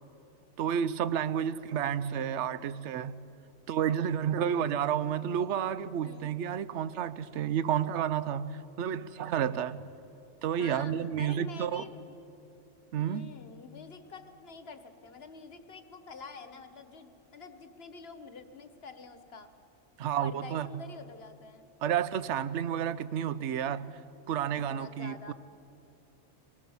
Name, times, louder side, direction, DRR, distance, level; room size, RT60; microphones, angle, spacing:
voice 1, 0.6-3.2 3.7-9.9 10.4-11.8 12.9-13.3 20.0-20.7 21.8-24.0 24.3-25.3, right 9 dB, 65° right, 0.9 m, -31 dB
voice 2, 10.6-12.2 13.0-19.5 20.1-21.7 24.4-25.3, left 4 dB, 50° left, 1.3 m, -47 dB
23.5 x 18.5 x 7.1 m
omnidirectional pair, 1.4 m